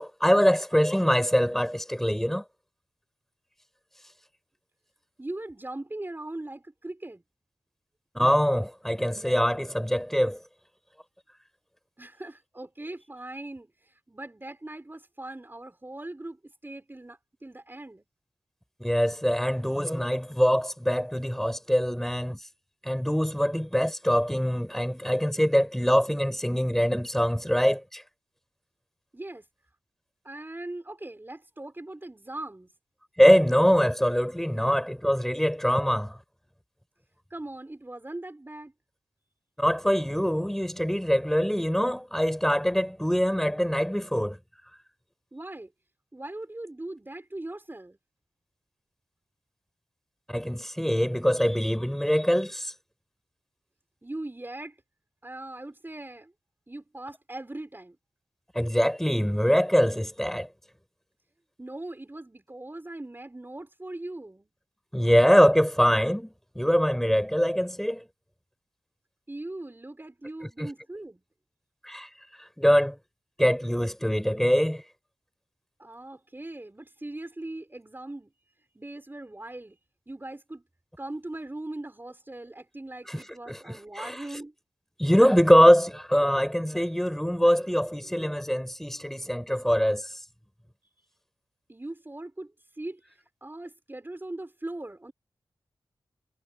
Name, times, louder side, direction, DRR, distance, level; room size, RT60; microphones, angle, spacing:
voice 1, 0.0-2.4 8.1-10.4 18.8-22.4 22.8-28.0 33.2-36.2 39.6-44.4 50.3-52.7 58.5-60.5 64.9-68.0 70.6-70.7 71.8-72.1 72.6-73.0 73.4-74.8 83.1-83.2 83.5-84.2 85.0-90.1, equal, 5° left, 6.4 m, -23 dB
voice 2, 5.2-7.2 12.0-18.1 29.1-29.5 30.2-32.7 37.3-38.7 45.3-45.7 46.1-48.0 54.0-54.8 55.2-56.3 56.7-58.0 61.6-64.5 69.3-71.2 75.8-78.3 78.7-79.8 80.1-80.6 81.0-84.5 91.7-92.5 92.8-93.0 93.4-95.1, right 2 dB, 25° right, 5.7 m, -40 dB
wide cardioid pair, 75°, 9 cm